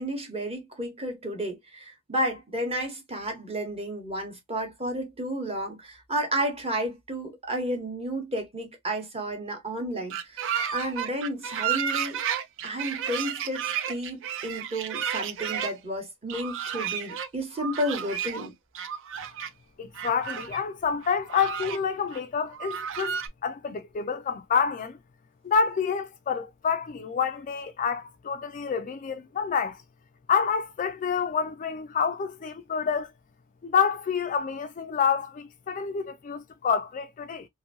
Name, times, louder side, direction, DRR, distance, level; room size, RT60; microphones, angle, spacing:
voice 1, 0.0-12.2 12.6-18.5, right 1 dB, 25° right, 1.0 m, -32 dB
sound 1, 10.1-15.7 16.3-17.3 17.6-18.5 18.7-19.5 19.9-20.6 21.0-21.8 22.1-22.2 22.5-23.3, right 8 dB, 60° right, 0.4 m, -32 dB
voice 2, 19.8-25.0 25.4-29.8 30.3-33.1 33.6-37.5, left 6 dB, 35° left, 0.3 m, -28 dB
2.9 x 2.6 x 2.5 m
head